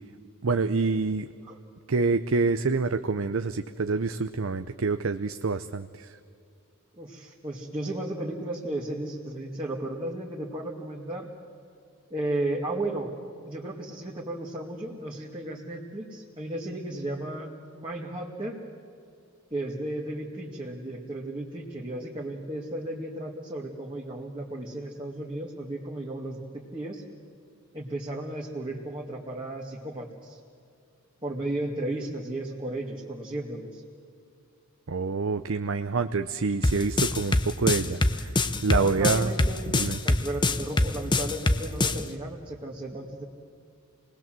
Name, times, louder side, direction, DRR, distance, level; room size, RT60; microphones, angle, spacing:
voice 1, 0.4-1.3 1.9-6.1 34.9-38.3 38.6-39.3 39.7-40.0, right 4 dB, 65° right, 9 dB, 0.7 m, -27 dB
voice 2, 7.0-11.3 12.1-13.1 13.4-17.5 17.7-18.6 19.5-27.0 27.7-30.4 31.2-33.8 38.7-39.7 40.0-43.2, right 1 dB, 25° right, -3 dB, 2.0 m, -34 dB
sound 1, 36.6-42.0, left 2 dB, 20° left, 0.8 m, -23 dB
27.5 x 20.0 x 7.6 m, 2.4 s
head